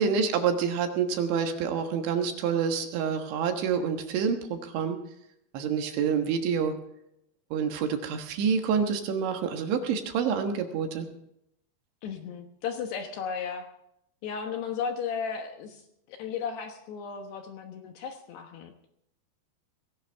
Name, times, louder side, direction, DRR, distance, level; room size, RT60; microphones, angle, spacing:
voice 1, 0.0-5.0 5.5-6.7 7.5-11.1, right 6 dB, 70° right, 5 dB, 3.5 m, -27 dB
voice 2, 12.0-13.7 14.2-15.8 16.1-18.7, left 6 dB, 70° left, 4 dB, 2.8 m, -35 dB
19.5 x 17.0 x 3.5 m, 0.76 s
omnidirectional pair, 5.8 m